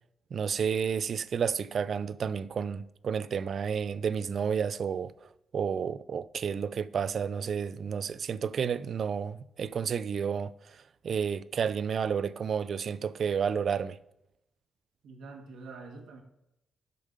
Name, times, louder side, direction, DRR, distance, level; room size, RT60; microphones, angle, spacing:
voice 1, 0.3-5.3 5.5-10.8 11.0-14.0, right 7 dB, 45° right, 0.3 m, -31 dB
voice 2, 15.0-16.2, right 3 dB, 70° right, 1.4 m, -46 dB
6.7 x 5.2 x 6.5 m
wide cardioid pair, 170°, 0 cm